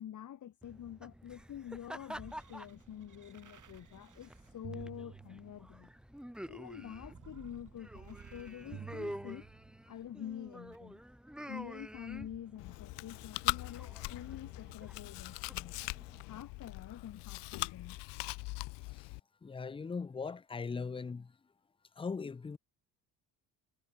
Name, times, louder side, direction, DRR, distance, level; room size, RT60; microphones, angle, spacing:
voice 1, 0.0-5.9 6.4-9.5 9.9-11.0 11.5-15.7 16.2-18.0, left 10 dB, 45° left, 1.0 m, -47 dB
sound 1, 0.6-16.2, equal, ahead, 5.9 m, -49 dB
sound 2, 1.0-5.9 6.7-10.0 10.7-10.8, right 7 dB, 45° right, 4.5 m, -53 dB
Chewing mastication, 12.6-19.2, left 24 dB, 70° left, 0.6 m, -40 dB
voice 2, 19.4-21.3 22.0-22.6, left 5 dB, 15° left, 0.4 m, -39 dB
supercardioid pair, 65°, 43 cm